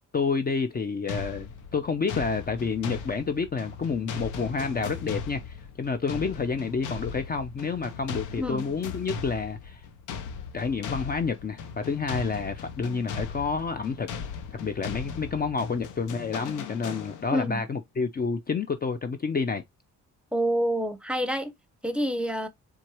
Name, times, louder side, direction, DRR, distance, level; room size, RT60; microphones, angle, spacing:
voice 1, 0.1-9.8 10.5-14.1 14.5-19.6, left 5 dB, 30° left, 0.6 m, -29 dB
sound 1, 1.1-17.5, left 5 dB, 85° left, 0.9 m, -38 dB
voice 2, 17.3-17.6 20.3-21.5 21.8-22.5, equal, 5° right, 0.9 m, -27 dB
4.5 x 3.5 x 3.0 m
cardioid pair, 90°, 30 cm